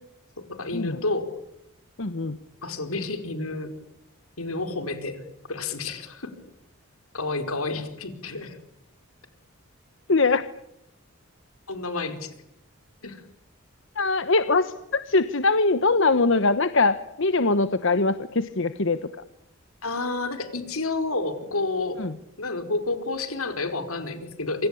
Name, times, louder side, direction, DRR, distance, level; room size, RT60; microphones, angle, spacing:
voice 1, 0.4-1.3 2.6-3.7 4.4-6.3 7.1-8.6 11.7-12.3 13.0-13.2 19.8-22.0 22.4-24.7, left 3 dB, 85° left, 9 dB, 5.0 m, -30 dB
voice 2, 2.0-2.4 10.1-10.4 14.0-19.0 22.0-22.1, left 3 dB, 60° left, 12 dB, 1.1 m, -22 dB
27.5 x 25.0 x 8.5 m, 0.82 s
head